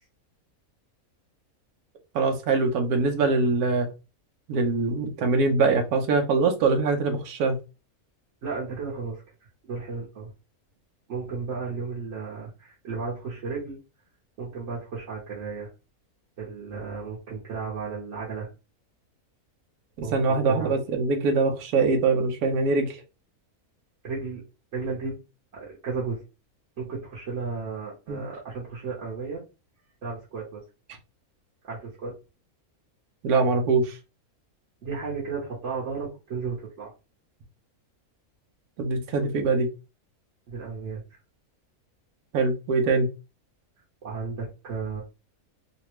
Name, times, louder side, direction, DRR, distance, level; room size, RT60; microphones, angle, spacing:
voice 1, 2.1-3.9 4.5-7.6 20.0-23.0 28.1-28.3 33.2-33.9 38.8-39.7 42.3-43.1, right 4 dB, 85° right, 1.2 m, -23 dB
voice 2, 8.4-9.2 9.6-10.3 11.1-13.8 14.4-15.7 16.4-18.5 20.0-20.7 24.0-24.4 24.7-25.2 25.5-26.2 26.8-29.4 30.0-30.6 31.6-32.1 34.8-36.9 40.5-41.0 44.0-45.0, right 4 dB, 55° right, 1.2 m, -34 dB
3.2 x 2.2 x 3.0 m
omnidirectional pair, 1.5 m